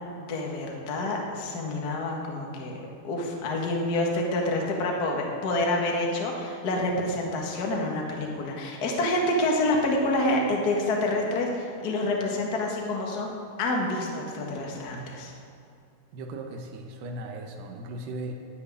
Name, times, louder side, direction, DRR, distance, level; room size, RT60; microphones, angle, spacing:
voice 1, 0.2-2.8 3.0-13.3 13.6-15.3, left 2 dB, 60° left, -1 dB, 1.0 m, -27 dB
voice 2, 16.1-18.3, right 1 dB, 85° right, 2 dB, 3.0 m, -37 dB
12.5 x 6.5 x 9.7 m, 2.4 s
omnidirectional pair, 4.6 m